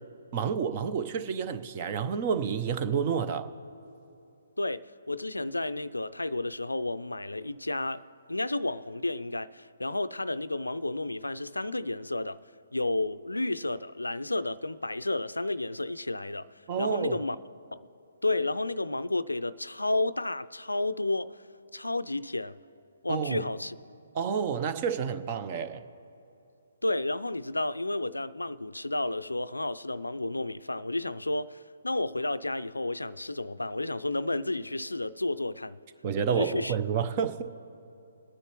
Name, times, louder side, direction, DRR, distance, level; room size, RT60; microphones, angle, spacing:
voice 1, 0.3-3.5 16.7-17.2 23.1-23.4 24.1-25.8 36.0-37.5, right 7 dB, 35° right, 0.7 m, -29 dB
voice 2, 4.6-12.4 12.7-16.5 16.8-17.4 17.7-17.9 18.2-21.4 21.7-22.6 23.0-23.8 26.8-35.8 36.3-36.8, left 2 dB, 85° left, 0.4 m, -31 dB
22.0 x 9.8 x 3.0 m
figure-of-eight pair, 135°, 0 cm